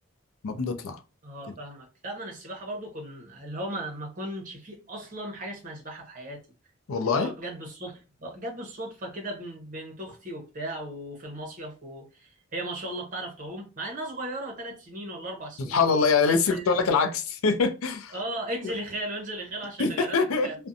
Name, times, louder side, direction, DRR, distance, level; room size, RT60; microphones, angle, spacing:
voice 1, 0.4-1.0 6.9-7.3 15.6-18.1 18.6-18.7 19.8-20.5, left 4 dB, 85° left, 0.5 m, -24 dB
voice 2, 1.2-6.4 7.0-15.8 16.2-16.6 18.1-20.5, right 1 dB, 40° right, 0.8 m, -36 dB
2.5 x 2.1 x 2.6 m
head